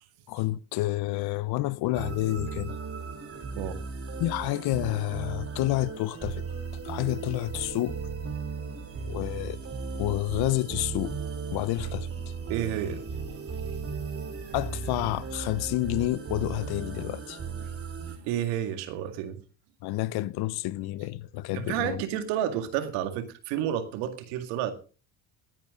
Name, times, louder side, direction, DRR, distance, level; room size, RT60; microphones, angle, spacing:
voice 1, 0.3-2.8 4.2-6.4 6.8-8.0 9.0-9.6 9.9-11.2 11.5-12.1 14.5-17.4 19.8-22.0, left 17 dB, 65° left, 0.8 m, -29 dB
Ambient intro, 1.9-18.2, right 5 dB, 35° right, 3.5 m, -36 dB
voice 2, 12.5-13.0 13.3-13.7 18.1-19.4 21.5-24.7, right 10 dB, 85° right, 2.1 m, -31 dB
19.0 x 11.0 x 3.7 m
supercardioid pair, 100°, 41 cm